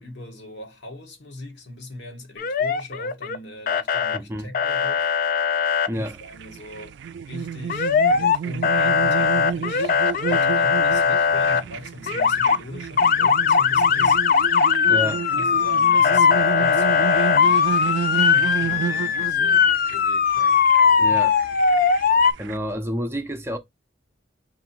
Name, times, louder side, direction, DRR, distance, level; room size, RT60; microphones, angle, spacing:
voice 1, 0.0-5.1 5.9-9.9 10.3-17.7 18.1-20.6 21.0-21.2 22.7-22.8, left 1 dB, 75° left, 1.5 m, -40 dB
Motor vehicle (road) / Siren, 2.4-3.4 3.7-4.2 4.5-5.9 7.7-8.4 8.6-11.6 12.1-12.6 13.0-22.3, left 6 dB, 50° left, 0.4 m, -19 dB
voice 2, 4.1-4.5 5.9-6.2 14.9-15.2 21.0-21.4 21.9-22.0 22.4-23.6, equal, 15° right, 0.5 m, -29 dB
sound 1, 5.9-22.6, right 7 dB, 70° right, 0.3 m, -31 dB
3.7 x 2.6 x 4.4 m
head